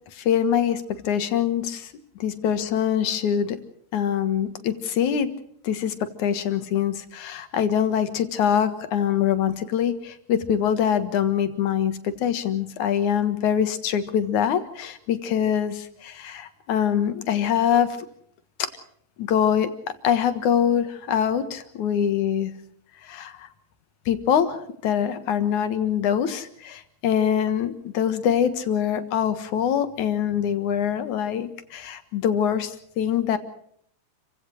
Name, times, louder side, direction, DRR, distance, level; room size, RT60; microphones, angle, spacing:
voice 1, 0.1-1.9 2.2-3.6 3.9-5.3 5.6-18.0 18.6-18.7 19.2-19.7 20.0-22.5 23.0-23.5 24.1-33.4, left 9 dB, 85° left, 10 dB, 3.0 m, -24 dB
29.0 x 16.0 x 6.4 m, 0.66 s
omnidirectional pair, 3.3 m